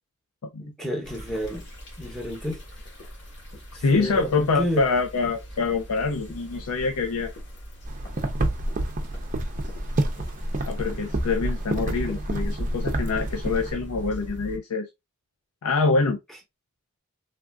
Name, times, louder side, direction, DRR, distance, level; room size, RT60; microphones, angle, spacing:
voice 1, 0.6-1.6 2.0-2.6 3.7-4.9 6.3-6.4, equal, ahead, 0.8 m, -30 dB
sound 1, 1.0-14.6, equal, 55° left, 1.1 m, -41 dB
voice 2, 3.8-7.3 10.7-14.9 15.6-16.2, left 4 dB, 85° left, 0.4 m, -25 dB
sound 2, 7.9-13.7, right 1 dB, 35° right, 0.5 m, -28 dB
3.2 x 2.4 x 2.3 m
head